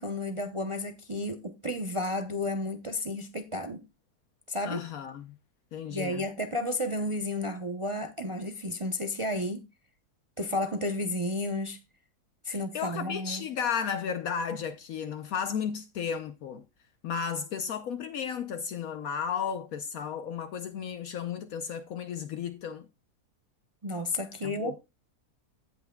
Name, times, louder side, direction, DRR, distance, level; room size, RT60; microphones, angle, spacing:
voice 1, 0.0-3.8 4.5-4.8 5.9-9.6 10.4-11.8 12.4-13.4 23.8-24.8, left 1 dB, 35° right, 0.5 m, -32 dB
voice 2, 4.6-5.3 5.7-6.2 12.5-16.6 17.0-22.9 24.4-24.8, left 7 dB, 70° left, 1.1 m, -34 dB
16.0 x 5.9 x 2.2 m
omnidirectional pair, 1.7 m